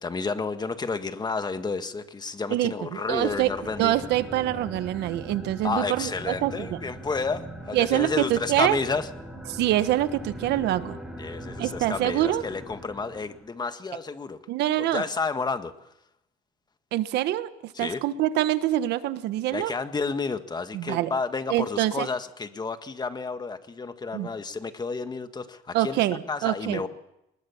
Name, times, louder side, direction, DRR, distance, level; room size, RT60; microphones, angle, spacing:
voice 1, 0.0-3.9 5.6-9.1 11.2-14.4 14.8-15.9 17.7-18.0 19.5-26.9, left 4 dB, 25° left, 9 dB, 1.7 m, -31 dB
voice 2, 2.5-3.5 3.8-6.8 7.7-8.8 9.5-11.0 11.6-12.4 14.5-15.0 16.9-19.7 20.7-21.1 21.5-22.1 24.1-24.3 25.7-26.8, right 14 dB, 85° right, 12 dB, 1.3 m, -25 dB
sound 1, 3.0-13.5, right 1 dB, ahead, 6.2 m, -41 dB
23.5 x 20.5 x 7.2 m, 0.86 s
cardioid pair, 110°, 17 cm